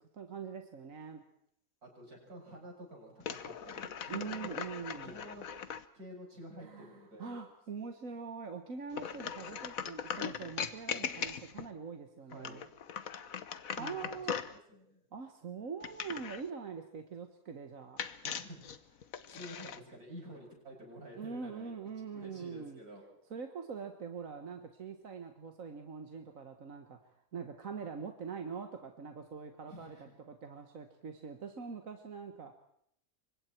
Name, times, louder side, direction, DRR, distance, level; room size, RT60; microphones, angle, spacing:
voice 1, 0.2-1.2 4.1-5.2 6.6-12.6 13.7-14.4 15.1-18.0 21.2-22.8 23.3-32.5, right 5 dB, 65° right, 5 dB, 1.8 m, -43 dB
voice 2, 1.8-4.6 4.9-5.5 5.9-7.4 12.3-12.6 13.7-15.0 18.2-21.7 22.1-23.0 29.6-30.0, equal, 85° right, -1 dB, 7.8 m, -50 dB
sound 1, 3.2-5.9 8.9-11.7 12.3-14.6 15.8-16.5 18.0-19.8, left 7 dB, 70° left, 1.4 m, -40 dB
28.5 x 25.0 x 4.5 m, 0.71 s
omnidirectional pair, 1.6 m